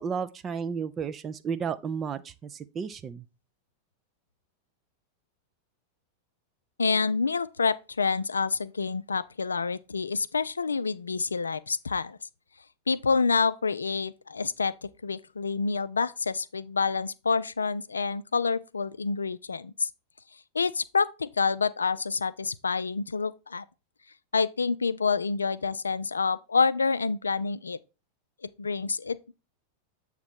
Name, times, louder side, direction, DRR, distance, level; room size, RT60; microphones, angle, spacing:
voice 1, 0.0-3.2, right 6 dB, 25° right, 0.4 m, -33 dB
voice 2, 6.8-12.2 12.9-19.9 20.5-23.6 24.3-27.8 28.6-29.3, left 5 dB, 75° left, 0.3 m, -28 dB
8.0 x 3.2 x 5.0 m
figure-of-eight pair, 90°, 0 cm